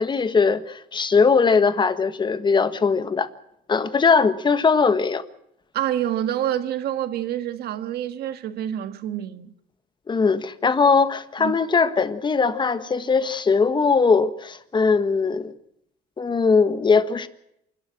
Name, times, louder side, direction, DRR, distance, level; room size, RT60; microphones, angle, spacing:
voice 1, 0.0-3.3 3.7-5.2 10.1-15.5 16.2-17.3, left 5 dB, 25° left, 1.5 m, -20 dB
voice 2, 5.7-9.5 11.4-11.5, right 11 dB, 70° right, 1.6 m, -27 dB
28.0 x 12.5 x 7.7 m
cardioid pair, 110°, 17 cm